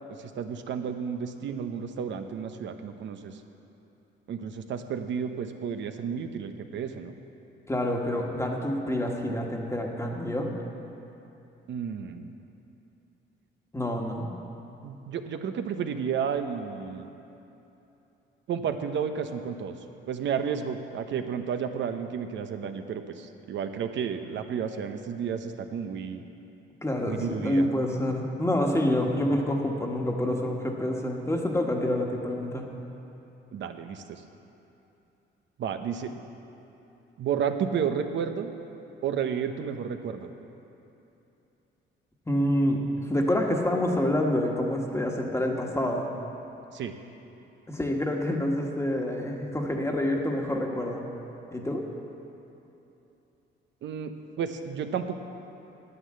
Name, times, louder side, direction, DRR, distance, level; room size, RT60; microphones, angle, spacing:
voice 1, 0.2-3.4 4.3-7.1 11.7-12.3 14.8-17.1 18.5-19.7 20.1-26.2 27.1-27.7 33.5-34.2 35.6-36.1 37.2-38.5 39.0-40.3 46.7-46.9 53.8-55.1, right 7 dB, 70° right, 7 dB, 0.8 m, -32 dB
voice 2, 7.7-10.5 13.7-14.3 26.8-32.7 42.3-46.1 47.7-51.0 51.5-51.8, left 1 dB, 15° left, 0 dB, 1.5 m, -27 dB
9.9 x 9.4 x 7.6 m, 3.0 s
cardioid pair, 90°, 20 cm